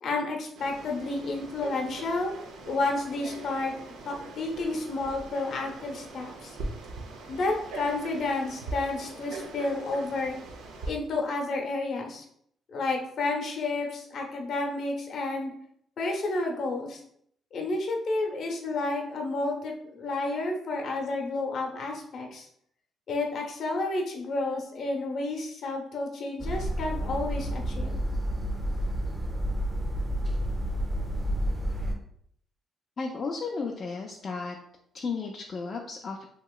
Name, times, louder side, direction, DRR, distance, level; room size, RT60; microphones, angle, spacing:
voice 1, 0.0-2.3 2.7-6.6 7.3-10.4 10.9-12.2 12.7-15.5 16.0-17.0 17.5-22.5 23.1-28.0, left 2 dB, 60° left, 1 dB, 0.7 m, -31 dB
Frog, 0.6-10.9, right 3 dB, 90° right, 0.5 m, -41 dB
sound 1, 26.4-31.9, equal, 20° right, 0.6 m, -30 dB
voice 2, 33.0-34.6 34.9-36.2, left 4 dB, 45° left, 1 dB, 0.3 m, -34 dB
2.9 x 2.9 x 2.3 m, 0.68 s
cardioid pair, 90°, 0 cm